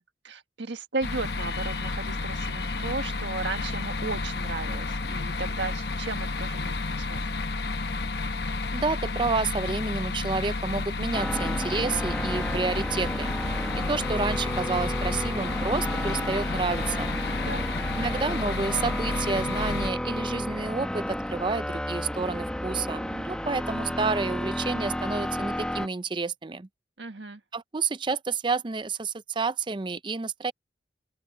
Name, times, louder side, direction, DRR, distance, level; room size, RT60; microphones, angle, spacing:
voice 1, 0.0-7.3 17.4-17.7 27.0-27.4, right 3 dB, 80° right, 1.6 m, -35 dB
sound 1, 1.0-19.9, left 3 dB, 65° left, 1.0 m, -31 dB
voice 2, 8.7-13.3 13.8-17.2 18.0-26.7 27.5-30.5, right 4 dB, 25° right, 0.5 m, -30 dB
sound 2, 11.1-25.9, equal, 5° left, 1.2 m, -32 dB
open air
head